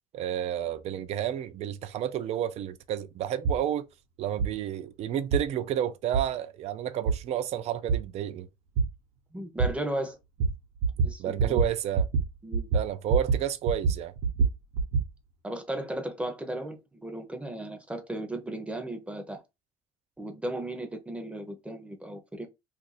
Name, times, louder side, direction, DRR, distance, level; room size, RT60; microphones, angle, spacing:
voice 1, 0.1-3.9 4.2-8.5 11.2-12.1 12.7-14.1, right 10 dB, 50° right, 0.4 m, -31 dB
sound 1, 3.4-3.6 4.4-4.5 5.3-5.4 6.1-6.2 7.1-7.2 7.9-8.0 8.8-8.9 9.6-9.7 10.4-10.5 10.8-11.1 11.4-11.7 11.9-12.2 12.5-13.4 13.7-15.1, right 5 dB, 80° right, 0.9 m, -24 dB
voice 2, 9.3-10.2 11.0-11.6 12.4-12.7 15.4-19.4 20.2-22.5, right 1 dB, 10° right, 0.7 m, -35 dB
2.6 x 2.5 x 4.1 m
cardioid pair, 140°, 14 cm